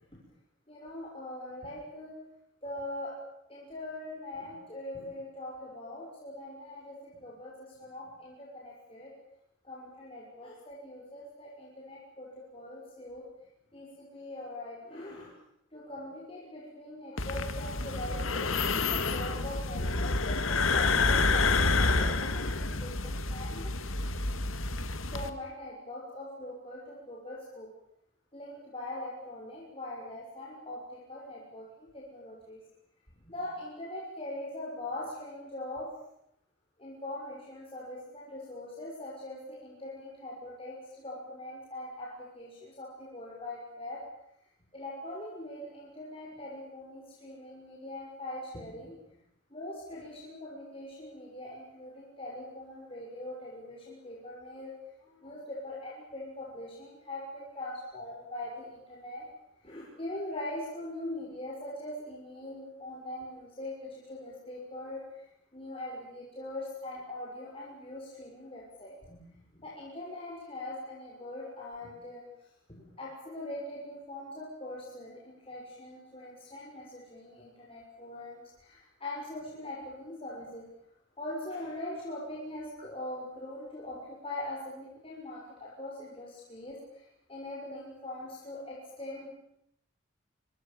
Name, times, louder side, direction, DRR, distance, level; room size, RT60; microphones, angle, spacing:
voice 1, 0.7-2.1 2.6-3.1 3.5-7.0 7.2-9.1 9.6-13.2 13.7-15.3 15.7-24.1 25.1-27.7 28.3-32.6 33.3-35.9 36.8-44.0 44.7-48.9 49.5-54.7 55.0-59.3 59.6-65.0 65.5-69.3 69.5-72.2 72.7-80.6 81.2-87.0 87.3-89.3, left 1 dB, 25° left, -4 dB, 6.5 m, -42 dB
sound 1, 17.2-25.3, left 3 dB, 75° left, 2.2 m, -28 dB
26.5 x 25.0 x 7.1 m, 0.77 s
head